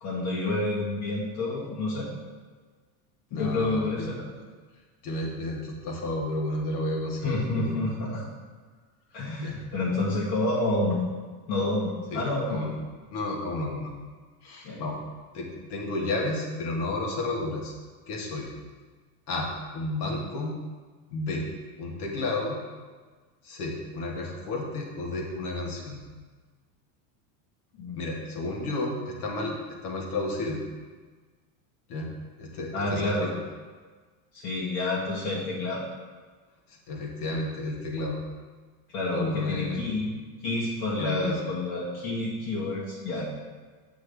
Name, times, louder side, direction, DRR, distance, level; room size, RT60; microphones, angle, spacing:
voice 1, 0.0-2.1 3.3-4.2 7.2-8.2 9.1-11.0 11.5-12.6 14.6-14.9 27.8-28.0 32.7-33.3 34.3-35.8 38.9-40.1 40.4-43.2, left 2 dB, 55° left, -6 dB, 1.7 m, -29 dB
voice 2, 3.3-4.1 5.0-7.8 9.4-9.5 12.1-12.2 12.5-12.7 13.1-13.9 14.4-15.0 15.3-17.7 18.1-18.5 19.3-19.5 19.7-20.5 21.1-21.5 21.8-22.6 23.4-26.0 28.0-29.6 29.8-30.6 31.9-32.1 32.4-33.1 36.9-38.2 39.1-40.0 41.0-41.4, left 2 dB, 80° left, -1 dB, 1.8 m, -31 dB
8.0 x 6.1 x 3.4 m, 1.4 s
supercardioid pair, 155°, 45 cm